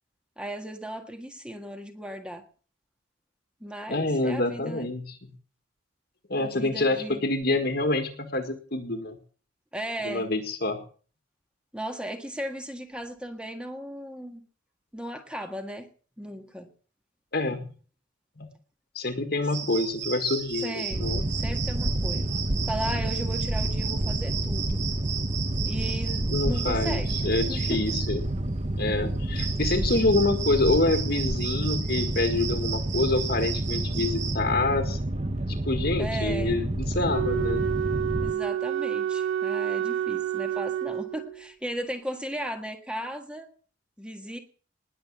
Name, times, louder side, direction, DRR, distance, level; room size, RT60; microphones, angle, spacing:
voice 1, 0.4-2.4 3.6-4.9 6.3-7.2 9.7-10.3 11.7-14.4 14.9-15.9 16.2-16.7 20.6-22.3 22.7-24.8 25.6-27.2 27.5-27.8 36.0-36.5 38.2-43.5 44.0-44.4, equal, 5° right, 5 dB, 1.7 m, -36 dB
voice 2, 3.9-5.3 6.3-9.2 10.0-10.8 17.3-17.7 18.4-18.5 18.9-21.3 26.3-28.3 28.8-35.0 35.5-37.7, left 2 dB, 55° left, 6 dB, 1.8 m, -27 dB
sound 1, 19.5-34.4, right 8 dB, 60° right, 3.1 m, -35 dB
Boat Water vehicle, 20.9-38.3, right 1 dB, 35° right, 1.0 m, -29 dB
Wind instrument woodwind instrument, 37.0-41.5, right 9 dB, 85° right, 1.6 m, -29 dB
20.0 x 7.5 x 8.5 m, 0.43 s
head